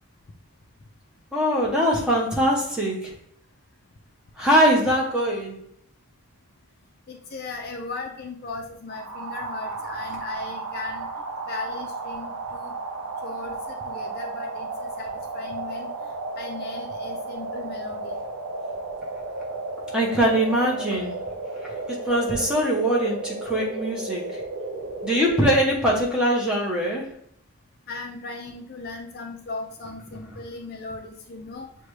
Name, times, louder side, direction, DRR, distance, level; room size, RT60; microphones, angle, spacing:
voice 1, 1.3-3.1 4.4-5.6 19.9-21.2 21.6-24.4 25.0-27.2, equal, 5° right, -3 dB, 0.8 m, -22 dB
voice 2, 7.1-11.1 11.5-12.7 13.2-15.9 16.4-18.2 27.9-31.7, left 3 dB, 45° left, 3 dB, 0.4 m, -37 dB
sound 1, 8.9-25.5, right 3 dB, 75° right, 0.5 m, -34 dB
6.5 x 2.2 x 3.1 m, 0.66 s
head